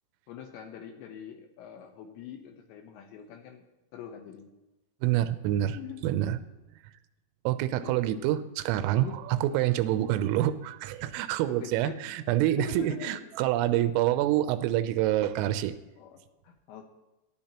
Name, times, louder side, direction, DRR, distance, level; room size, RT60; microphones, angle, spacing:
voice 1, 0.3-3.6 3.9-4.5 5.7-6.0 7.8-8.5 9.0-9.2 9.5-9.6 10.2-10.4 11.5-12.0 12.3-13.3 14.0-14.2 16.0-16.9, left 8 dB, 75° left, 4 dB, 2.9 m, -44 dB
voice 2, 5.0-5.8 6.0-6.4 7.5-15.7, right 13 dB, 85° right, 12 dB, 3.3 m, -27 dB
19.0 x 13.0 x 2.9 m, 1.0 s
omnidirectional pair, 5.8 m